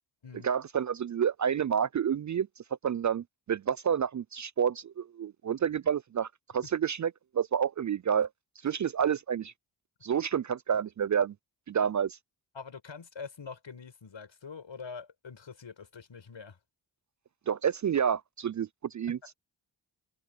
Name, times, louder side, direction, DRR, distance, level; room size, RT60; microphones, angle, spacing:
voice 1, 0.4-2.5 2.8-6.3 6.5-8.3 8.6-9.5 10.0-11.3 11.7-12.2 17.5-19.2, right 8 dB, 40° right, 0.4 m, -29 dB
voice 2, 12.5-16.6, left 5 dB, 70° left, 7.2 m, -44 dB
cardioid pair, 45°, 47 cm